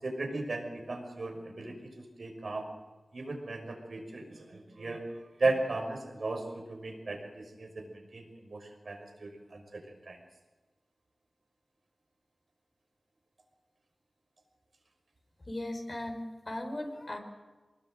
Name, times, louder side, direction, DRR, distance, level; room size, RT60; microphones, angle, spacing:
voice 1, 0.0-2.7 3.1-10.2, right 2 dB, 70° right, 4 dB, 5.7 m, -36 dB
voice 2, 15.5-17.2, left 1 dB, 40° left, 2 dB, 4.9 m, -37 dB
24.5 x 20.5 x 7.8 m, 1.2 s
wide cardioid pair, 75°, 0 cm